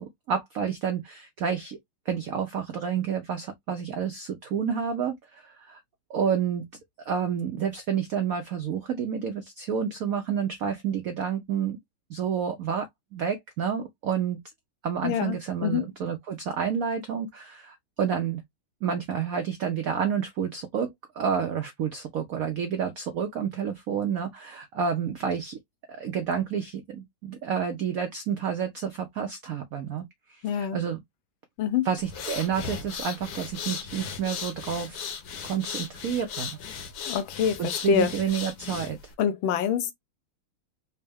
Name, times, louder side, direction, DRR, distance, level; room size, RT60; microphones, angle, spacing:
voice 1, 0.0-1.8 2.1-5.8 6.1-6.7 7.1-11.8 12.1-14.4 14.8-18.4 18.8-25.6 25.9-31.0 31.8-35.1 35.4-36.5 37.6-39.0, right 7 dB, 75° right, 0.7 m, -29 dB
voice 2, 15.0-15.8 30.4-30.8 31.6-31.9 37.1-38.1 39.2-39.9, left 9 dB, 80° left, 1.5 m, -26 dB
sound 1, 32.0-39.1, left 7 dB, 60° left, 1.1 m, -37 dB
4.3 x 2.1 x 3.4 m
omnidirectional pair, 2.3 m